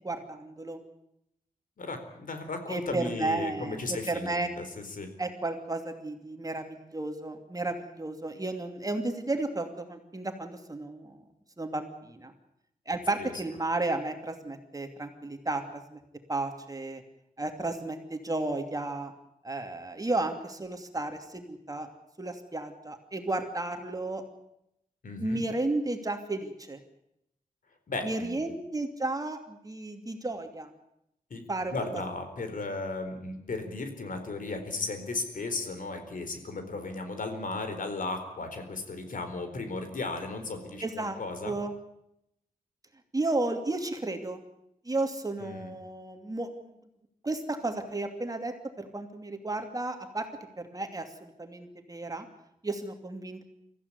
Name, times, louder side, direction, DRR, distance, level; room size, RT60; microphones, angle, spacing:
voice 1, 0.0-0.8 2.7-4.5 5.2-11.2 11.6-12.3 12.9-16.0 16.3-17.0 17.4-19.1 19.4-21.9 22.2-24.2 25.2-26.8 28.0-30.7 31.5-31.8 40.8-41.2 41.4-41.7 43.1-44.4 44.8-46.7 47.2-50.3 50.6-52.3 52.6-53.4, right 2 dB, 25° right, 5 dB, 2.7 m, -33 dB
voice 2, 1.8-5.1 13.2-13.3 25.0-25.5 27.9-28.4 31.3-41.6 45.4-45.7, left 3 dB, 65° left, 7 dB, 4.3 m, -35 dB
24.0 x 15.0 x 9.8 m, 0.82 s
wide cardioid pair, 115°, 15 cm